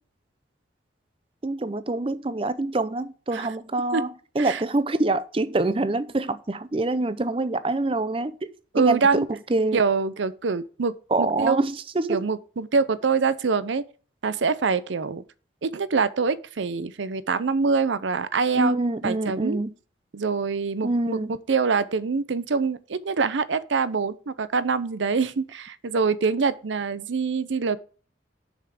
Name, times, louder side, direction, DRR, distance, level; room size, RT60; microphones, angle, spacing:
voice 1, 1.4-9.8 11.1-12.3 18.5-19.7 20.8-21.4, right 2 dB, 30° right, 0.5 m, -26 dB
voice 2, 8.7-9.3 9.7-11.6 12.1-13.8 14.2-15.2 15.6-18.8 19.0-19.6 20.1-21.2 21.5-27.8, right 5 dB, 75° right, 0.6 m, -25 dB
7.2 x 5.7 x 4.9 m
head